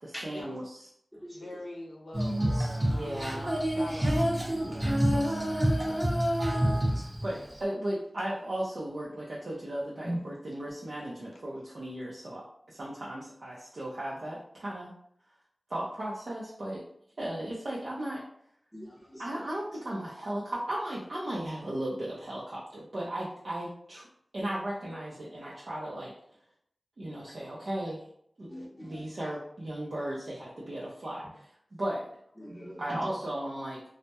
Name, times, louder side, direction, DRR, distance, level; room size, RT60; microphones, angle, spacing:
voice 1, 0.0-0.9 2.8-4.2 4.6-14.9 15.7-16.8 17.2-18.2 19.2-24.1 24.3-26.1 27.0-28.0 28.4-28.5 28.8-31.5 31.8-32.1 32.8-33.8, right 1 dB, 70° right, -6 dB, 0.5 m, -36 dB
voice 2, 1.3-3.5 3.8-4.2, left 1 dB, 85° left, -1 dB, 0.5 m, -43 dB
Female singing, 2.1-7.6, equal, 35° right, 0.7 m, -27 dB
voice 3, 4.5-4.8 6.7-6.8 10.0-10.2 18.7-19.2 28.5-28.9 32.4-33.0, equal, 5° left, -5 dB, 0.7 m, -40 dB
2.2 x 2.0 x 2.8 m, 0.69 s
wide cardioid pair, 55°, 0 cm